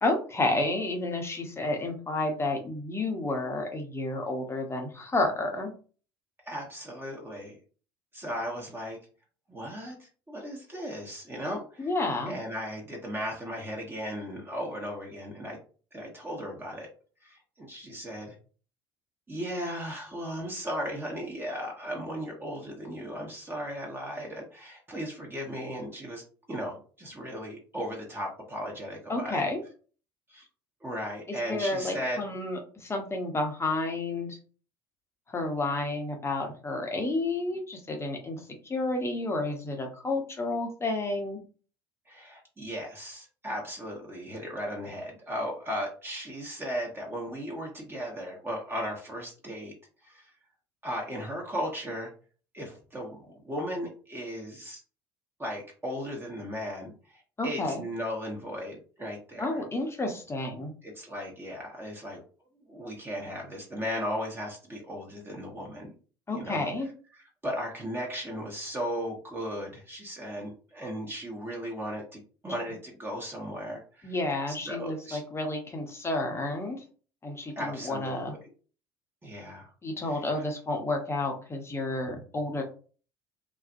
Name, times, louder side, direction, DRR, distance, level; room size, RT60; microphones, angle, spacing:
voice 1, 0.0-5.7 11.8-12.3 29.1-29.6 31.3-34.4 35.3-41.4 57.4-57.8 59.4-60.7 66.3-66.9 74.0-76.8 77.2-78.3 79.8-82.6, left 2 dB, 20° left, 3 dB, 0.7 m, -30 dB
voice 2, 6.4-7.6 8.1-9.0 9.5-11.9 12.3-15.6 15.9-16.9 17.2-18.3 19.3-26.2 26.5-29.4 30.3-30.4 30.8-32.2 42.1-49.7 50.0-50.3 50.8-52.1 52.5-54.8 55.4-59.6 60.8-62.2 62.7-65.9 66.3-66.7 67.1-74.1 74.5-75.2 77.6-78.4 79.2-79.7 80.1-80.4, equal, 20° right, -1 dB, 0.9 m, -36 dB
2.4 x 2.0 x 2.5 m, 0.38 s
hypercardioid pair, 65°, 12 cm